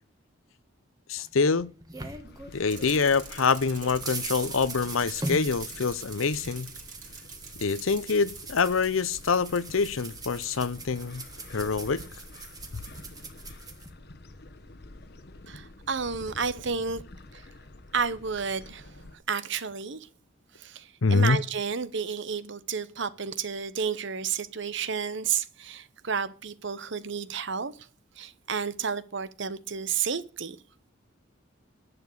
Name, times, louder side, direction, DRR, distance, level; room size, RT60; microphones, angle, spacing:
voice 1, 1.1-1.7 2.5-6.7 7.6-11.2 11.5-12.0 21.0-21.4, left 4 dB, 80° left, 0.7 m, -25 dB
sound 1, 1.2-3.0 3.4-13.9, right 2 dB, 20° right, 1.5 m, -41 dB
sound 2, 2.1-19.2, left 2 dB, 50° left, 1.1 m, -48 dB
Bicycle, 2.7-9.6 10.0-10.1, right 6 dB, 40° right, 3.0 m, -46 dB
voice 2, 15.5-17.0 17.3-17.4 17.9-19.0 19.3-20.1 20.6-27.7 28.2-30.6, right 6 dB, 60° right, 0.9 m, -31 dB
11.0 x 6.9 x 8.4 m
head